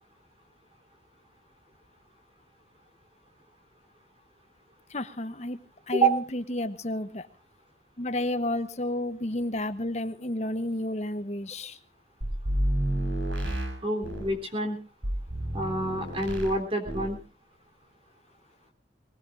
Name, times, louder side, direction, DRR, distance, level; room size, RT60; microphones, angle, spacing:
voice 1, 4.9-7.3 8.0-11.8, left 1 dB, 35° left, 10 dB, 1.0 m, -31 dB
sound 1, 12.2-14.4 15.0-16.6 16.9-17.2, right 1 dB, 75° right, 5.5 m, -30 dB
voice 2, 13.8-14.8 15.5-17.2, right 3 dB, 30° right, 3 dB, 3.7 m, -27 dB
24.0 x 19.5 x 2.7 m, 0.31 s
head